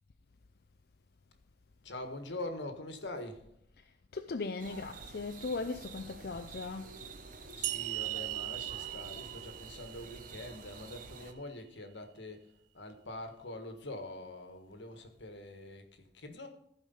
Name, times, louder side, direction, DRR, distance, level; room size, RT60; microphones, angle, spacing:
voice 1, 1.8-3.4 7.5-16.5, left 1 dB, 85° left, 1.5 m, -44 dB
voice 2, 4.1-6.9, left 3 dB, 55° left, 0.5 m, -38 dB
sound 1, 4.6-11.3, right 4 dB, 45° right, 0.9 m, -49 dB
sound 2, 7.6-11.0, right 18 dB, 70° right, 0.4 m, -39 dB
15.0 x 5.0 x 5.4 m
head